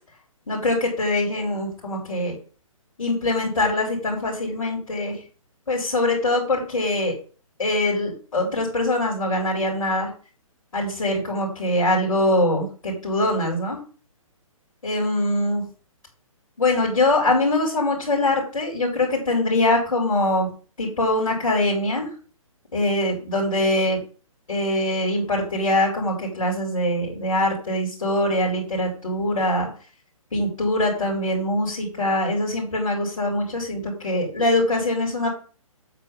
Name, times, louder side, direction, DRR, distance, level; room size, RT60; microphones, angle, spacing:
voice 1, 0.5-2.3 3.0-5.2 5.7-7.2 7.6-10.1 10.7-13.8 14.8-15.7 16.6-20.5 20.8-22.1 22.7-24.0 24.5-29.7 30.3-35.3, left 1 dB, 65° left, -3 dB, 3.8 m, -23 dB
8.0 x 4.2 x 6.8 m, 0.38 s
figure-of-eight pair, 135°, 18 cm